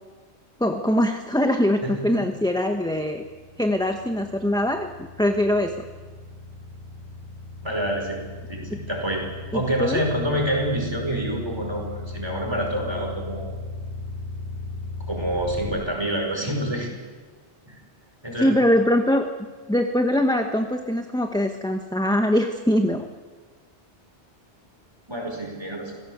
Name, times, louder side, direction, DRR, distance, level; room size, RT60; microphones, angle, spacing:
voice 1, 0.6-3.2 3.6-4.9 5.2-5.7 9.5-10.0 18.4-19.3 19.7-23.1, left 1 dB, 5° left, 5 dB, 1.2 m, -22 dB
voice 2, 1.8-2.2 7.6-8.2 8.5-9.2 9.5-13.5 15.1-16.9 17.7-17.8 18.2-18.6 25.1-25.9, right 1 dB, 20° right, 0 dB, 5.3 m, -27 dB
sound 1, 2.5-15.8, left 2 dB, 25° left, 5.0 m, -36 dB
26.0 x 16.5 x 8.1 m, 1.4 s
omnidirectional pair, 1.2 m